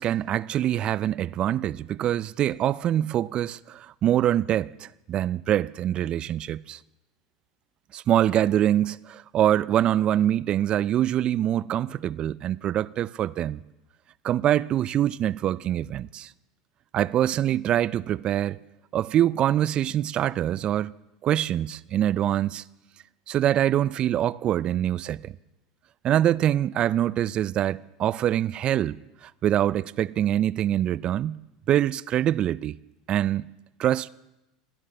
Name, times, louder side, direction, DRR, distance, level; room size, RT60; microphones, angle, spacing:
voice 1, 0.0-6.8 7.9-13.6 14.2-16.3 16.9-18.6 18.9-20.9 21.2-22.6 23.3-25.3 26.0-29.0 29.2-32.8 33.1-33.5 33.8-34.1, right 11 dB, 40° right, 0.3 m, -24 dB
23.0 x 10.5 x 3.4 m
hypercardioid pair, 95°, 3 cm